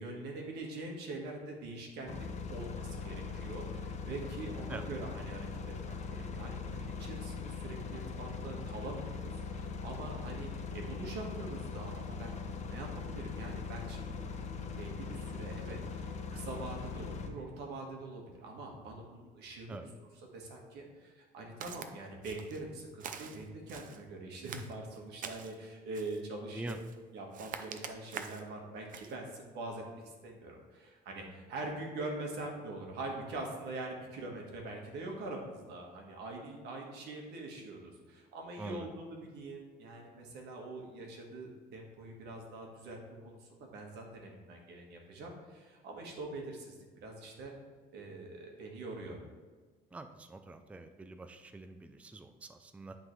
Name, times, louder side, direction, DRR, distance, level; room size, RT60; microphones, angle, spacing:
voice 1, 0.0-12.3 12.7-14.3 14.7-19.8 20.3-26.7 27.1-29.8 30.2-43.0 43.2-47.5 47.9-49.2, right 2 dB, 80° right, 1 dB, 1.5 m, -44 dB
sound 1, 2.1-17.3, left 5 dB, 45° left, 0.8 m, -41 dB
Walk footsteps, 21.6-21.9 22.2-22.6 23.0-24.0 24.4-25.6 25.9-26.2 26.7-27.0 27.3-28.5 28.9-29.2, right 7 dB, 50° right, 0.6 m, -45 dB
voice 2, 38.6-38.9 49.9-53.0, right 2 dB, 10° right, 7 dB, 0.4 m, -45 dB
11.0 x 3.9 x 3.2 m, 1.4 s
cardioid pair, 110°, 17 cm